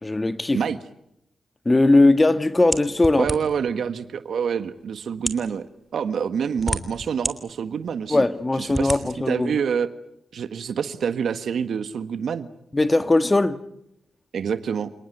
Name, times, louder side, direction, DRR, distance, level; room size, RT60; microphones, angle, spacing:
voice 1, 0.0-0.6 1.7-3.3 8.1-9.5 12.7-13.6, left 2 dB, 25° left, 1.9 m, -19 dB
Lock (Various), 2.7-3.7 4.5-4.6 5.1-5.5 6.3-7.3 7.9-8.0 8.7-9.0, equal, 5° right, 3.2 m, -29 dB
voice 2, 3.2-5.7 5.9-8.2 8.6-8.9 9.3-9.9 10.3-12.5 14.3-14.9, right 7 dB, 75° right, 1.5 m, -26 dB
29.0 x 18.5 x 9.4 m
supercardioid pair, 50°, 0 cm